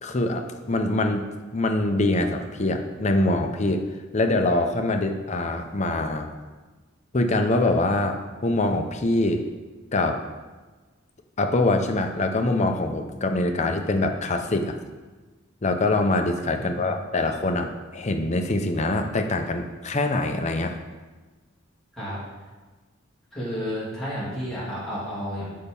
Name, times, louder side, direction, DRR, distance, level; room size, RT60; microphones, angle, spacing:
voice 1, 0.0-3.8 4.1-6.3 7.1-9.4 9.9-10.2 11.4-14.8 15.6-20.8, left 2 dB, 35° left, 5 dB, 0.6 m, -24 dB
voice 2, 16.5-17.0 21.9-22.2 23.3-25.5, equal, ahead, -10 dB, 2.7 m, -31 dB
6.6 x 5.5 x 5.4 m, 1.3 s
head